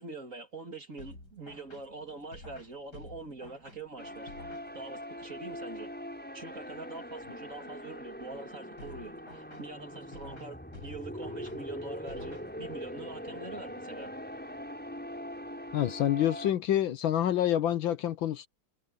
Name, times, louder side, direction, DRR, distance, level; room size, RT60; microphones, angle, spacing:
voice 1, 0.0-4.3 4.7-5.9 6.3-14.1, right 3 dB, 35° right, 3.3 m, -44 dB
sound 1, 1.0-5.2 8.8-13.0, left 2 dB, 50° left, 7.0 m, -51 dB
sound 2, 4.0-16.5, equal, 5° left, 7.3 m, -42 dB
voice 2, 15.7-18.5, left 11 dB, 70° left, 1.6 m, -27 dB
omnidirectional pair, 2.3 m